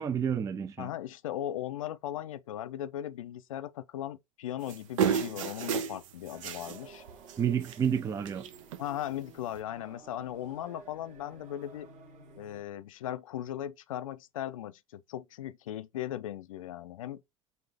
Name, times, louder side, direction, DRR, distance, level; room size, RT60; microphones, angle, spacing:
voice 1, 0.0-0.9 7.4-8.5, right 8 dB, 20° right, 0.4 m, -30 dB
voice 2, 0.8-7.0 8.8-11.9 12.4-17.2, left 12 dB, 80° left, 0.4 m, -38 dB
sound 1, 4.7-6.8 7.1-7.3 7.6-8.0 8.2-8.8 9.5-9.6, right 7 dB, 75° right, 0.7 m, -31 dB
sound 2, 6.3-12.6, right 4 dB, 45° right, 1.4 m, -53 dB
4.1 x 2.5 x 3.3 m
hypercardioid pair, 95°, 17 cm